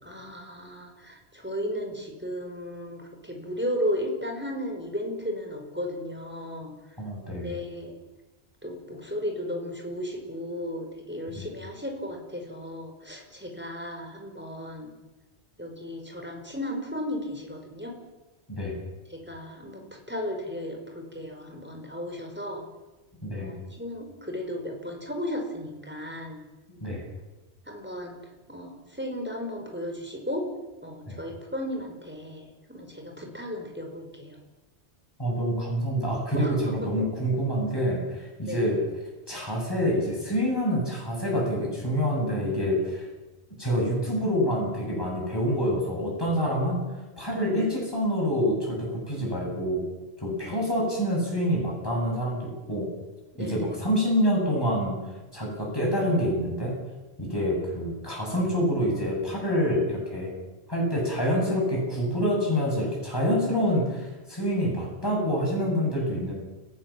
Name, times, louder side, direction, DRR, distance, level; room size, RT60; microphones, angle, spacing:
voice 1, 0.0-6.7 7.4-8.0 8.6-14.9 15.6-17.9 19.1-22.6 23.3-26.4 27.7-28.1 28.5-30.5 30.8-34.4 36.3-37.1 38.5-38.8 50.5-50.7 53.3-53.7, equal, 10° right, 2 dB, 5.0 m, -35 dB
voice 2, 7.0-7.5 11.4-11.5 18.5-18.8 23.2-23.5 26.8-27.0 31.1-31.2 35.2-38.8 39.3-43.1 43.6-46.8 47.2-49.8 50.2-52.9 53.4-55.0 55.3-56.8 57.2-60.3 60.7-66.3, equal, 20° left, -3 dB, 8.2 m, -27 dB
29.5 x 17.0 x 7.5 m, 1.1 s
omnidirectional pair, 1.1 m